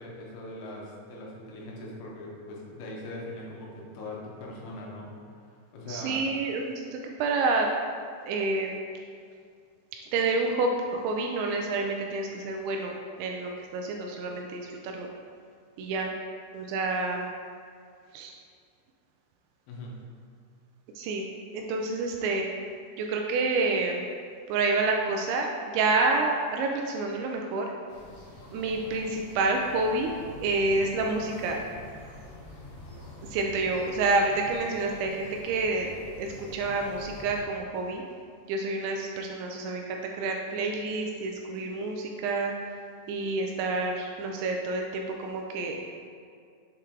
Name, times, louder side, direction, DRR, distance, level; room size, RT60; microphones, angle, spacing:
voice 1, 0.0-5.1 5.7-6.2 19.7-20.0, left 1 dB, 80° left, -3 dB, 3.5 m, -40 dB
voice 2, 5.9-7.7 8.3-8.8 10.1-15.1 15.8-16.1 16.5-17.3 18.1-18.3 21.0-21.3 21.5-22.5 23.0-24.0 24.5-27.7 28.5-30.1 30.4-31.6 33.2-35.9 36.2-38.0 38.5-42.5 43.1-45.9, right 3 dB, 85° right, 2 dB, 2.7 m, -28 dB
sound 1, 27.9-37.4, left 2 dB, 60° left, 2.0 m, -46 dB
7.9 x 4.5 x 3.6 m, 2.3 s
omnidirectional pair, 5.5 m